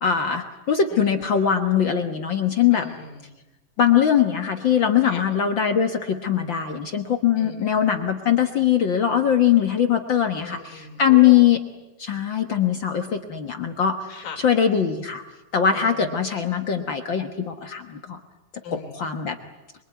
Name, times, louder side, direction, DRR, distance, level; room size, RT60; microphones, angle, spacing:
voice 1, 0.0-2.9 3.8-11.6 12.0-14.1 14.4-15.2 15.5-18.2 18.9-19.4, left 9 dB, 60° left, 6 dB, 1.3 m, -21 dB
voice 2, 2.7-3.3 5.0-5.3 7.4-7.8 10.4-11.4 14.1-14.5 15.7-16.2 18.6-19.0, left 7 dB, 85° left, 4 dB, 4.6 m, -39 dB
26.5 x 23.0 x 9.4 m, 1.1 s
omnidirectional pair, 3.9 m